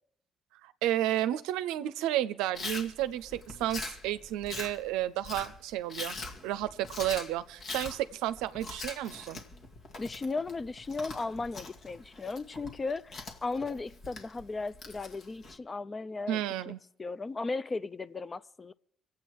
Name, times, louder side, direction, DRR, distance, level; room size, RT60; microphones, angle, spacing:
voice 1, 0.6-6.2 6.4-9.4 16.3-16.8, right 13 dB, 85° right, 0.5 m, -32 dB
Chewing mastication, 2.5-15.6, left 3 dB, 60° left, 2.0 m, -43 dB
voice 2, 10.0-16.7 17.0-18.7, left 3 dB, 35° left, 0.5 m, -36 dB
24.0 x 8.4 x 4.7 m
supercardioid pair, 55°, 0 cm